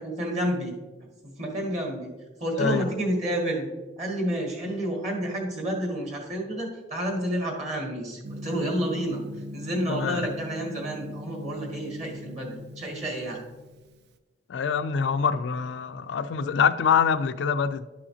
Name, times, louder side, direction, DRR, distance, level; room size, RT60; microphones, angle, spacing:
voice 1, 0.0-0.7 1.4-2.1 2.4-3.7 4.0-9.2 9.5-13.5, right 1 dB, 35° right, -1 dB, 1.8 m, -30 dB
voice 2, 2.5-2.9 9.9-10.2 14.5-17.8, left 6 dB, 70° left, 11 dB, 0.4 m, -25 dB
Gong, 8.2-14.1, left 1 dB, 60° right, 0.4 m, -40 dB
11.5 x 5.6 x 2.8 m, 1.2 s
head